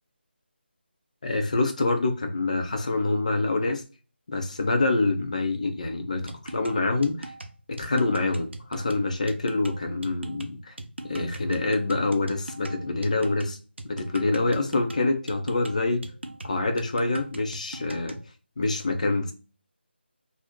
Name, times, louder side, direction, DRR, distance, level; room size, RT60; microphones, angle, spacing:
voice 1, 1.2-3.8 4.3-7.3 7.7-10.7 11.0-13.6 13.8-16.0 16.4-18.2 18.6-19.3, left 2 dB, 40° left, 0.5 m, -26 dB
sound 1, 6.3-18.3, right 2 dB, 75° right, 0.5 m, -40 dB
2.6 x 2.1 x 3.5 m
figure-of-eight pair, 160°, 6 cm